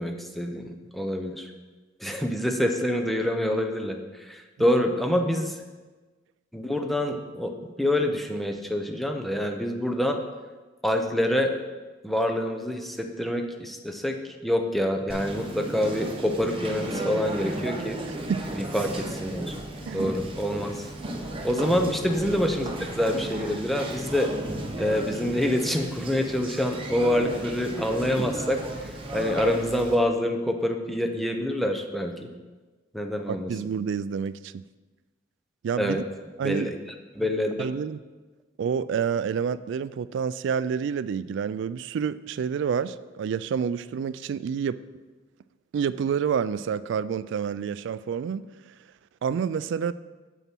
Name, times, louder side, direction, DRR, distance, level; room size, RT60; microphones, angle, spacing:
voice 1, 0.0-1.5 2.0-5.5 6.5-7.5 7.8-10.2 10.8-11.5 12.0-14.2 14.4-18.0 18.5-19.5 19.9-20.8 21.4-24.3 24.8-32.3 32.9-33.5 35.8-36.0 36.4-36.7 37.2-37.7, left 1 dB, ahead, 4 dB, 0.6 m, -26 dB
Conversation, 15.1-29.9, right 1 dB, 30° right, 0.9 m, -34 dB
voice 2, 19.9-20.2 21.5-21.7 33.3-34.6 35.6-36.0 36.4-36.7 37.6-38.0 38.6-44.8 45.7-48.5 49.2-49.9, right 7 dB, 65° right, 15 dB, 0.3 m, -28 dB
7.3 x 6.8 x 4.4 m, 1.3 s
head